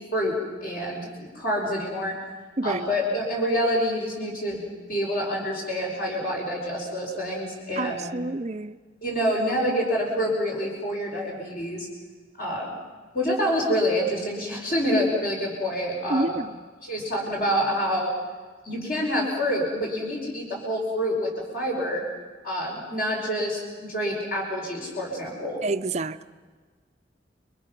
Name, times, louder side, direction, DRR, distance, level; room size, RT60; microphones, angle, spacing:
voice 1, 0.6-2.2 2.6-8.1 9.0-11.9 12.4-12.8 13.1-16.4 16.8-18.1 18.6-22.0 22.4-25.6, equal, 50° left, 5.1 m, -27 dB
voice 2, 2.6-2.9 7.8-8.8 16.1-16.6 25.6-26.3, right 2 dB, 35° right, 0.6 m, -28 dB
28.5 x 22.5 x 6.0 m
head